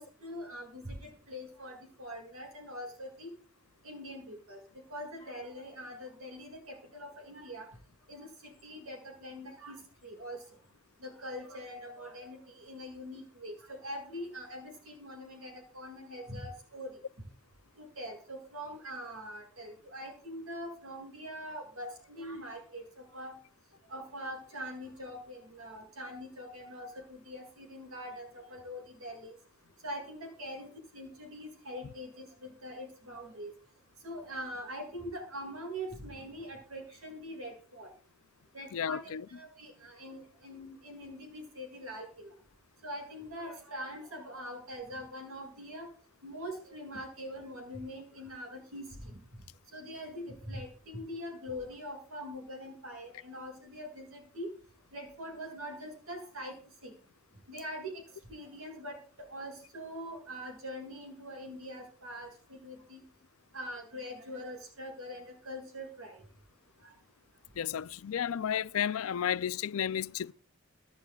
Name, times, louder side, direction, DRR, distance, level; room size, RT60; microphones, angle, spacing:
voice 1, 0.0-3.3 3.8-4.6 4.9-7.7 8.1-9.8 10.0-10.4 11.0-16.9 17.8-23.3 23.9-26.9 27.2-29.3 29.8-33.5 34.0-37.9 38.5-42.3 42.8-45.9 46.2-49.1 49.7-54.5 54.9-56.5 56.8-56.9 57.5-57.9 58.3-63.0 63.5-66.2 66.8-66.9, equal, 80° right, 6.9 m, -43 dB
voice 2, 38.7-39.3 67.6-70.3, left 9 dB, 80° left, 0.4 m, -32 dB
24.5 x 9.9 x 2.4 m
head